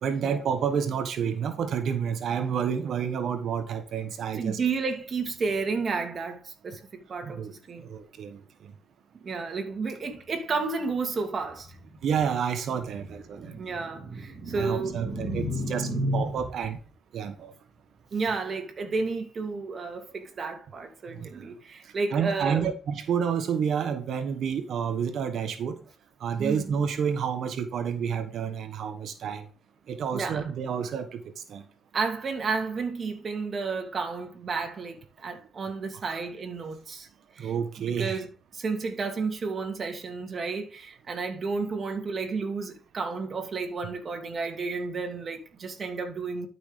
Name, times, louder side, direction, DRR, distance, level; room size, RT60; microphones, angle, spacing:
voice 1, 0.0-4.6 7.2-7.5 7.8-8.7 12.0-13.5 14.6-16.8 17.1-17.5 21.1-21.5 22.1-25.8 26.2-29.5 29.9-31.2 31.5-31.6 36.1-36.2 37.4-38.2, right 7 dB, 65° right, 1.3 m, -29 dB
voice 2, 4.3-7.9 9.2-11.8 13.3-16.4 18.1-22.7 26.4-26.7 30.1-30.5 31.9-37.1 37.3-38.3 38.5-46.5, right 4 dB, 45° right, 2.7 m, -31 dB
12.0 x 6.2 x 3.3 m
cardioid pair, 90°, 0 cm